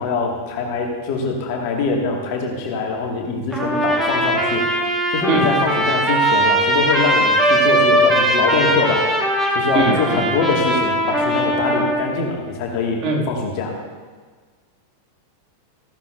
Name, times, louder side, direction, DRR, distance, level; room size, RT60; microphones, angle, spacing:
voice 1, 0.0-4.6 5.1-9.1 9.5-13.7, left 4 dB, 45° left, 1 dB, 1.9 m, -23 dB
Trumpet, 3.5-12.1, right 1 dB, 5° right, 1.7 m, -19 dB
voice 2, 9.7-10.2 13.0-13.2, right 3 dB, 35° right, -2 dB, 2.2 m, -20 dB
15.0 x 11.5 x 2.6 m, 1.5 s
figure-of-eight pair, 90°, 0 cm